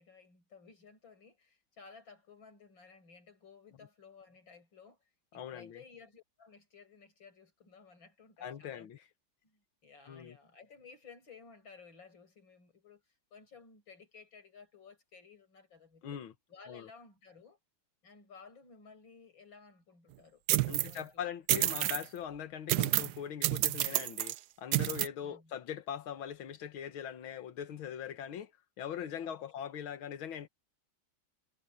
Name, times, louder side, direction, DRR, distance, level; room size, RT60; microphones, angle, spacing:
voice 1, 0.0-5.0 5.3-8.9 9.4-13.0 13.3-16.2 16.5-17.6 18.0-21.2 25.2-25.5 29.2-29.5, left 5 dB, 70° left, 6.8 m, -56 dB
voice 2, 5.3-5.8 8.4-9.1 10.1-10.4 16.0-16.3 16.7-16.9 20.7-30.5, left 9 dB, 90° left, 2.1 m, -41 dB
sound 1, 20.5-21.0 21.5-22.0 22.7-23.2 23.4-24.4 24.7-25.1, right 15 dB, 75° right, 1.0 m, -29 dB
omnidirectional pair, 2.2 m